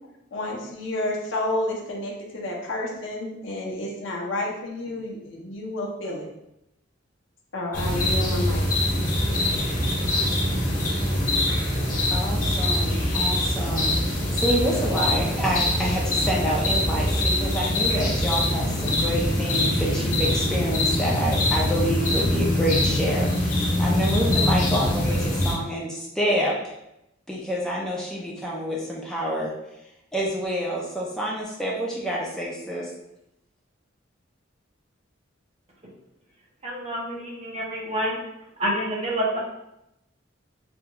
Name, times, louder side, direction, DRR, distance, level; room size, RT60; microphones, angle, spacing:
voice 1, 0.3-6.3 7.5-8.7, left 1 dB, 75° left, -1 dB, 0.7 m, -30 dB
sound 1, 7.7-25.5, left 1 dB, 45° left, 1.0 m, -23 dB
voice 2, 12.1-26.5 27.3-29.5 30.1-32.9, equal, 5° left, -4 dB, 0.4 m, -28 dB
voice 3, 36.6-38.2 38.6-39.4, equal, 35° right, -3 dB, 0.7 m, -27 dB
3.4 x 2.3 x 2.9 m, 0.85 s
head